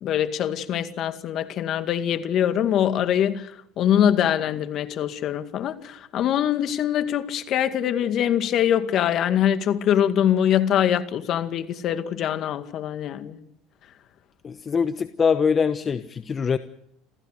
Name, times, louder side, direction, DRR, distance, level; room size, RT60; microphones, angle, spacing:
voice 1, 0.0-3.5 3.8-13.4, left 10 dB, 55° left, 2.1 m, -23 dB
voice 2, 14.4-16.6, left 6 dB, 35° left, 1.0 m, -23 dB
27.5 x 15.5 x 6.7 m
hypercardioid pair, 85°, 0 cm